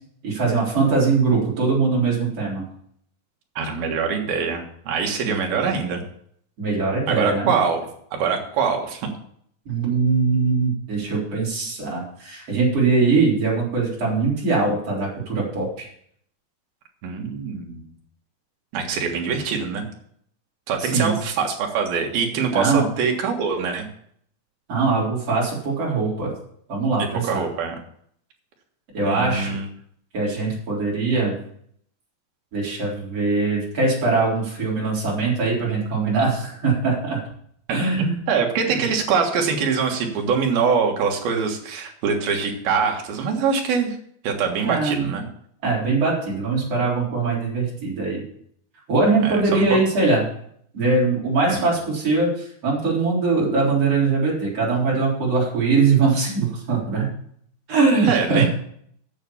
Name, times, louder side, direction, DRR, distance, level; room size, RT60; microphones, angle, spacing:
voice 1, 0.2-2.6 5.2-5.6 6.6-7.5 9.7-15.8 20.8-21.1 22.5-22.9 24.7-26.3 26.7-27.4 28.9-29.5 30.1-31.3 32.5-37.2 37.7-38.1 38.7-38.8 44.6-45.1 45.6-48.2 48.9-50.2 50.7-57.1 57.7-58.5, right 4 dB, 40° right, -5 dB, 4.8 m, -21 dB
voice 2, 3.6-6.0 7.1-9.1 17.0-17.8 18.7-19.8 20.7-23.9 27.0-27.8 29.0-29.6 38.0-44.0 44.2-45.3 49.2-49.8 51.5-51.7 58.0-58.5, right 5 dB, 75° right, 2 dB, 3.4 m, -24 dB
9.1 x 7.4 x 7.1 m, 0.66 s
omnidirectional pair, 4.4 m